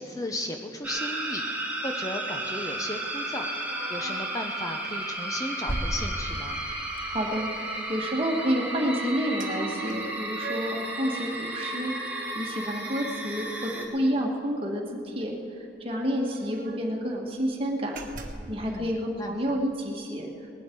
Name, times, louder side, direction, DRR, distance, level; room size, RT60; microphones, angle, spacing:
voice 1, 0.0-3.5 3.9-6.6 18.7-18.9 19.2-19.4, left 1 dB, 20° left, 4 dB, 0.6 m, -35 dB
sound 1, 0.8-13.8, right 1 dB, 10° right, 1.7 m, -33 dB
sound 2, 3.7-4.4 4.9-5.1 5.7-6.8 9.4-9.5 9.9-10.9 11.3-13.2 13.5-13.6 13.9-14.1 15.2-15.3 15.5-15.6 16.1-17.0 17.4-17.6 18.0-18.6, right 1 dB, 45° right, 1.2 m, -38 dB
voice 2, 7.0-18.0 18.5-20.3, equal, 30° right, 0 dB, 1.6 m, -29 dB
19.5 x 11.5 x 4.6 m, 2.5 s
head